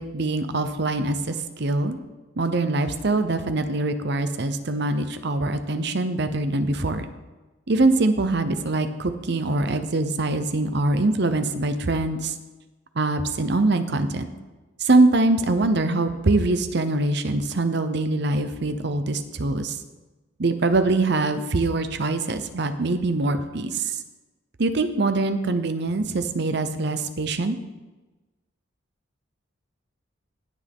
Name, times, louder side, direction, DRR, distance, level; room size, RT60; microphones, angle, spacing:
voice 1, 0.0-2.0 2.4-7.1 7.7-12.3 13.0-14.3 14.8-19.8 20.4-24.0 24.6-27.6, right 2 dB, 60° right, 9 dB, 0.8 m, -23 dB
17.5 x 6.2 x 3.6 m, 1.2 s
head